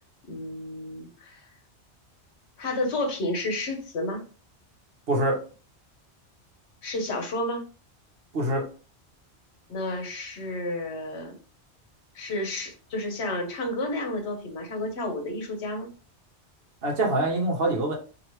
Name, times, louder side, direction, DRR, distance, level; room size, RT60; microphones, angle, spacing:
voice 1, 0.2-1.5 2.6-4.2 6.8-7.6 9.7-11.3 12.1-15.9, left 1 dB, 70° left, 4 dB, 1.1 m, -31 dB
voice 2, 5.1-5.4 8.3-8.6 16.8-18.0, right 1 dB, 60° right, 1 dB, 1.1 m, -24 dB
2.9 x 2.8 x 3.0 m, 0.36 s
omnidirectional pair, 1.2 m